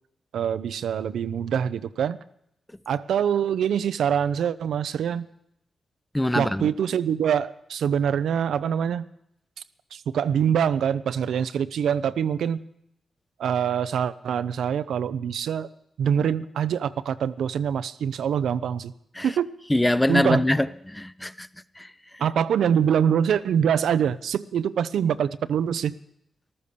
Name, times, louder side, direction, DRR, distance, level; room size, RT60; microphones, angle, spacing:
voice 1, 0.3-2.2 2.9-5.3 6.3-9.1 9.9-12.6 13.4-15.7 16.0-18.9 19.2-19.5 20.1-20.4 22.2-26.0, right 8 dB, 90° right, 13 dB, 0.5 m, -24 dB
voice 2, 6.1-6.7 19.1-19.3 19.7-21.5 21.8-22.3, left 1 dB, 10° left, 15 dB, 0.6 m, -24 dB
14.0 x 12.5 x 6.7 m, 0.76 s
cardioid pair, 75°, 0 cm